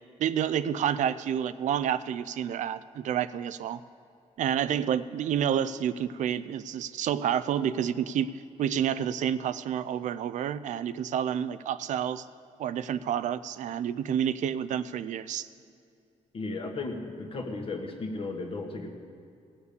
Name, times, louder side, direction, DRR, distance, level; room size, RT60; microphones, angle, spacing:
voice 1, 0.2-3.8 4.4-8.3 8.6-12.3 12.6-15.5, right 9 dB, 75° right, 14 dB, 0.4 m, -29 dB
voice 2, 16.3-18.9, left 3 dB, 45° left, 3 dB, 1.5 m, -35 dB
18.0 x 7.1 x 6.8 m, 2.4 s
cardioid pair, 140°, 13 cm